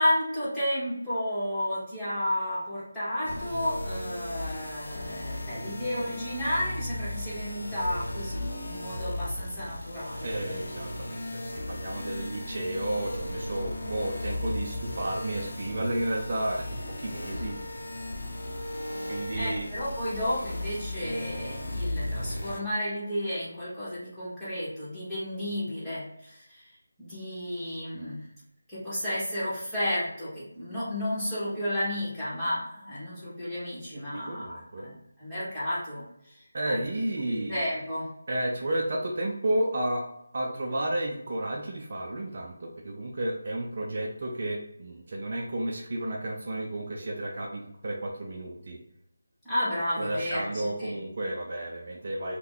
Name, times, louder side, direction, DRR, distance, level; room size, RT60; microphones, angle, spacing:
voice 1, 0.0-10.3 19.3-26.7 27.0-28.2 28.7-36.0 36.3-36.8 37.3-38.1 49.4-50.9, left 1 dB, 5° left, -14 dB, 1.3 m, -32 dB
sound 1, 3.2-22.6, left 1 dB, 65° left, 0.7 m, -36 dB
voice 2, 10.2-17.7 19.1-19.7 33.9-34.9 36.5-37.6 38.3-40.1 40.3-48.8 50.0-52.4, right 1 dB, 45° right, 0 dB, 0.5 m, -32 dB
2.8 x 2.2 x 3.7 m, 0.79 s
figure-of-eight pair, 165°, 0 cm